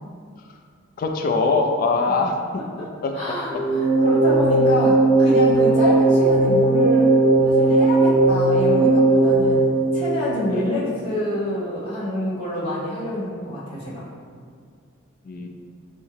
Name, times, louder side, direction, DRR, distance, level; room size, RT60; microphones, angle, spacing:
voice 1, 1.0-2.4 2.8-3.1 10.5-10.7 15.2-15.5, left 3 dB, 45° left, 3 dB, 0.3 m, -22 dB
voice 2, 3.1-7.1 7.4-9.6 9.9-14.1, left 1 dB, 30° left, -12 dB, 1.4 m, -27 dB
sound 1, 3.5-10.7, right 2 dB, 70° right, 1.4 m, -17 dB
3.6 x 3.1 x 3.1 m, 2.1 s
head